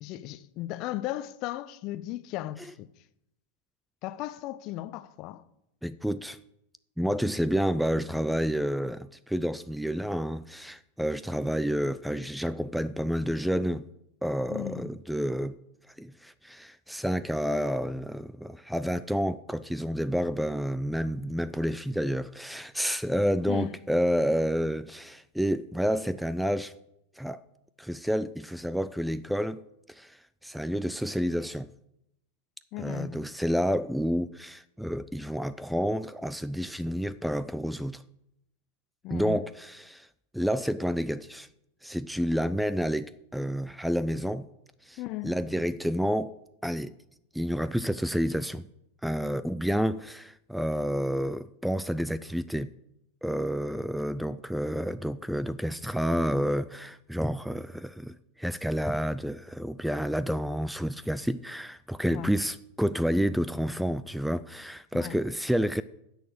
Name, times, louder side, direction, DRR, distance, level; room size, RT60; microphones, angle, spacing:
voice 1, 0.0-2.9 4.0-5.4 14.5-14.9 23.5-23.8 32.7-33.3 39.0-39.5 45.0-45.4 62.1-62.4 64.9-65.2, left 15 dB, 40° left, 0.6 m, -36 dB
voice 2, 5.8-6.4 7.0-13.8 14.2-15.6 16.0-26.7 27.2-27.4 27.8-29.6 29.9-31.7 32.8-38.0 39.1-40.1 40.3-41.5 41.8-44.5 44.8-45.0 45.2-46.4 46.6-46.9 47.3-48.6 49.0-52.7 53.2-65.8, equal, ahead, 0.3 m, -29 dB
10.0 x 6.9 x 8.1 m
figure-of-eight pair, 90°, 0 cm